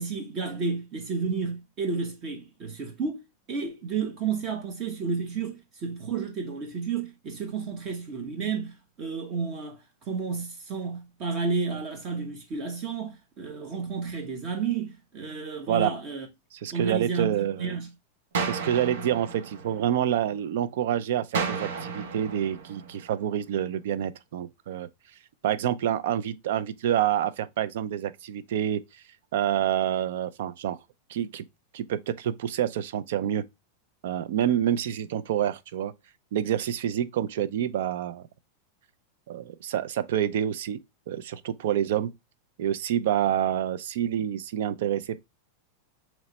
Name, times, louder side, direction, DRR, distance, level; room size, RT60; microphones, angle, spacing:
voice 1, 0.0-3.2 3.5-16.3 16.7-17.9, right 5 dB, 25° right, 0.9 m, -31 dB
voice 2, 16.6-17.8 18.4-24.9 25.4-28.8 29.3-30.8 31.1-31.4 31.7-33.4 34.0-35.9 36.3-38.2 39.3-40.8 41.1-42.1 42.6-45.2, right 10 dB, 60° right, 0.4 m, -27 dB
sound 1, 18.3-20.4 21.3-23.4, right 5 dB, 90° right, 0.8 m, -33 dB
3.1 x 2.9 x 4.1 m
supercardioid pair, 170°, 0 cm